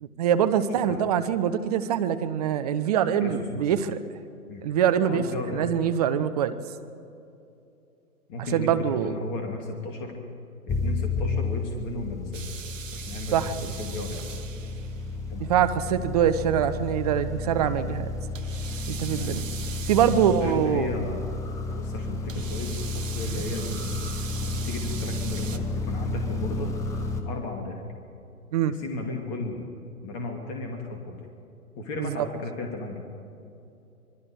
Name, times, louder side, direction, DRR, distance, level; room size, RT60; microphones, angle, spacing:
voice 1, 0.0-4.0 4.6-5.2 5.5-6.5 8.5-9.2 13.3-13.5 15.4-18.1 18.9-19.4 19.9-20.9 23.3-23.4 28.5-28.7 32.0-32.3, right 9 dB, 25° right, 11 dB, 0.8 m, -24 dB
voice 2, 0.7-1.0 3.2-3.8 4.5-4.6 5.0-5.7 8.3-10.1 10.7-12.4 12.9-13.4 13.8-14.3 15.3-15.5 19.1-19.3 20.0-24.0 24.4-26.7 27.2-27.8 28.7-29.7 30.0-31.2 31.8-33.0, left 2 dB, 25° left, 3 dB, 2.5 m, -35 dB
sound 1, 10.7-27.2, left 3 dB, 5° left, 0.8 m, -32 dB
sound 2, 12.3-15.2 18.3-20.8 22.3-25.6, right 7 dB, 55° right, 1.3 m, -41 dB
26.0 x 21.0 x 4.9 m, 2.6 s
figure-of-eight pair, 125°, 45 cm